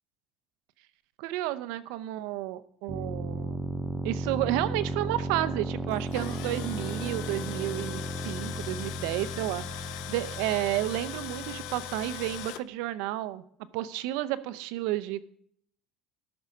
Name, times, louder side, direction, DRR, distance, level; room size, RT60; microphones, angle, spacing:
voice 1, 1.2-3.6 4.0-13.4 13.7-15.2, right 15 dB, 80° right, 13 dB, 0.6 m, -31 dB
sound 1, 2.9-12.5, right 1 dB, 5° right, 0.5 m, -35 dB
Tools, 5.9-12.6, left 14 dB, 70° left, 0.5 m, -40 dB
12.5 x 6.2 x 5.2 m, 0.65 s
cardioid pair, 165°, 0 cm